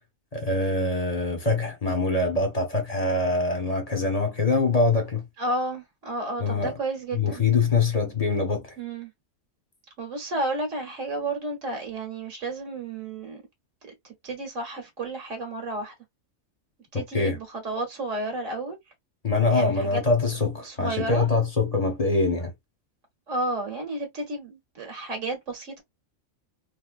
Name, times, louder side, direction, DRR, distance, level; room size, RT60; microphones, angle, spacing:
voice 1, 0.3-5.2 6.4-6.7 7.1-8.7 17.1-17.4 19.2-22.5, left 3 dB, 30° left, 0.9 m, -24 dB
voice 2, 5.4-7.4 8.8-9.1 10.0-13.4 13.8-15.9 16.9-18.8 19.5-20.0 20.6-21.3 23.3-25.8, right 2 dB, 65° right, 1.5 m, -32 dB
3.5 x 2.6 x 2.4 m
omnidirectional pair, 1.4 m